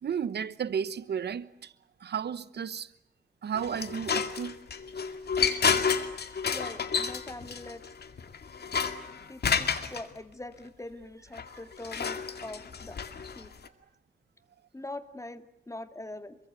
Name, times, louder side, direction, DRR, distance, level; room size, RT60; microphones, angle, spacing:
voice 1, 0.0-1.7 2.0-2.9 3.4-4.5, right 7 dB, 85° right, 1.1 m, -33 dB
sound 1, 3.5-10.0 11.3-13.7, left 6 dB, 75° left, 2.2 m, -30 dB
voice 2, 6.4-7.8 9.3-13.0 13.4-13.5 14.7-16.4, left 2 dB, 20° left, 2.3 m, -43 dB
27.5 x 24.0 x 8.2 m
cardioid pair, 80°, 17 cm